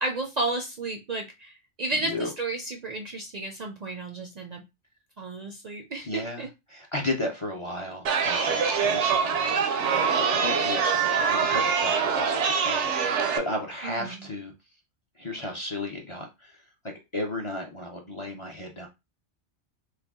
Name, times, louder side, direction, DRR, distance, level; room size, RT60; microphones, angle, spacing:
voice 1, 0.0-4.6 5.2-6.5 13.8-14.2, right 2 dB, 50° right, 2 dB, 0.5 m, -32 dB
voice 2, 6.0-14.5 15.2-16.6 17.1-18.9, left 2 dB, 35° left, 1 dB, 0.5 m, -34 dB
Chatter, 8.0-13.4, right 6 dB, 80° right, 0.9 m, -24 dB
3.3 x 2.2 x 3.5 m, 0.24 s
omnidirectional pair, 1.2 m